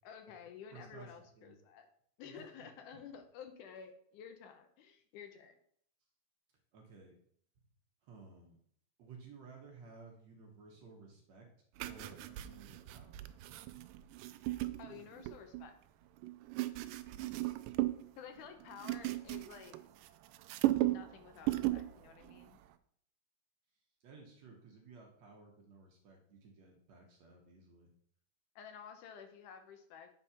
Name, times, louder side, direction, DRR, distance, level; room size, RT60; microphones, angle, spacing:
voice 1, 0.0-1.9 2.2-5.6 14.8-15.8 18.2-19.8 20.8-22.6 28.6-30.1, left 7 dB, 75° left, 7 dB, 2.2 m, -52 dB
voice 2, 0.7-1.5 2.2-2.7 6.7-7.1 8.0-8.6 9.0-11.5 11.8-13.3 14.7-15.1 24.0-27.9, right 4 dB, 65° right, 1 dB, 2.1 m, -56 dB
sound 1, 11.8-15.7 16.2-18.1 18.4-20.1 20.3-21.1 21.4-21.9 22.2-22.5, right 16 dB, 90° right, 2.2 m, -36 dB
8.3 x 4.3 x 5.6 m, 0.65 s
omnidirectional pair, 3.8 m